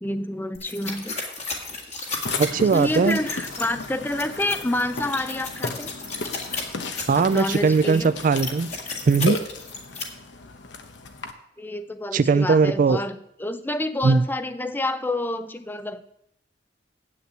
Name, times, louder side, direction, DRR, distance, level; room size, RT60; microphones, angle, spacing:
voice 1, 0.0-1.2 2.7-5.9 7.1-8.2 11.6-16.1, left 1 dB, 10° left, 11 dB, 0.5 m, -28 dB
sound 1, 0.5-10.0, left 4 dB, 35° left, 1.8 m, -34 dB
Burping eructation, 2.3-11.3, left 3 dB, 70° left, 1.0 m, -35 dB
voice 2, 2.4-3.2 7.1-8.7 9.1-9.4 12.1-13.0 14.0-14.2, right 4 dB, 45° right, 15 dB, 0.3 m, -19 dB
8.4 x 6.7 x 8.3 m, 0.78 s
head